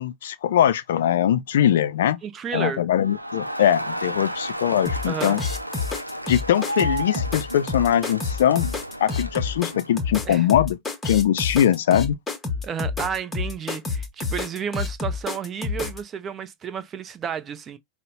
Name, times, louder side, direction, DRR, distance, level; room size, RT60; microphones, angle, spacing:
voice 1, 0.0-2.2 2.5-5.4 6.3-8.7 9.0-10.8 11.0-12.2, left 10 dB, 60° left, 0.4 m, -21 dB
voice 2, 2.2-2.8 5.1-5.4 10.3-10.5 12.6-17.8, right 7 dB, 25° right, 0.6 m, -31 dB
Crowd, 3.0-10.0, right 1 dB, 90° right, 0.5 m, -33 dB
sound 1, 4.9-16.0, left 4 dB, 10° left, 1.0 m, -28 dB
5.2 x 2.1 x 3.9 m
figure-of-eight pair, 90°, 0 cm